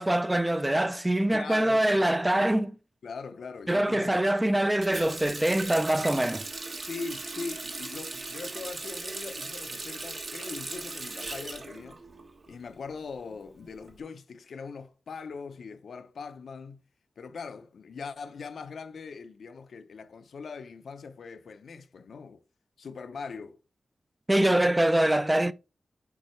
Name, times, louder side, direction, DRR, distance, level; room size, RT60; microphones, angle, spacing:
voice 1, 0.0-2.7 3.7-6.4 24.3-25.5, right 1 dB, 10° right, 0.4 m, -24 dB
voice 2, 1.3-1.9 3.0-4.1 6.8-12.0 12.5-16.8 17.2-22.4 22.8-23.6, left 5 dB, 85° left, 0.7 m, -41 dB
Water tap faucet, 4.8-12.6 12.9-13.9, right 3 dB, 50° right, 1.3 m, -38 dB
8.5 x 5.4 x 3.2 m
wide cardioid pair, 145°, 0 cm